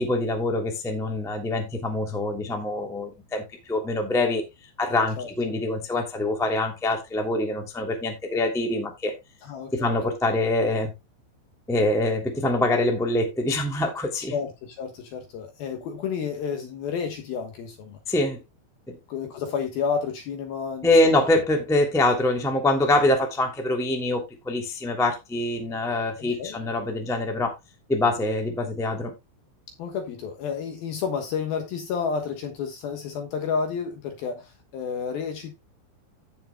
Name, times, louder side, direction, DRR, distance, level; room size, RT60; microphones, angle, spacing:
voice 1, 0.0-4.4 4.8-9.1 9.7-10.9 11.7-14.3 18.1-18.4 18.9-19.0 20.8-27.5 27.9-29.1, left 2 dB, ahead, 0.8 m, -24 dB
voice 2, 9.4-10.0 14.3-18.0 19.1-21.1 26.2-26.6 29.8-35.5, left 6 dB, 65° left, 2.5 m, -31 dB
17.0 x 6.1 x 2.2 m
omnidirectional pair, 5.6 m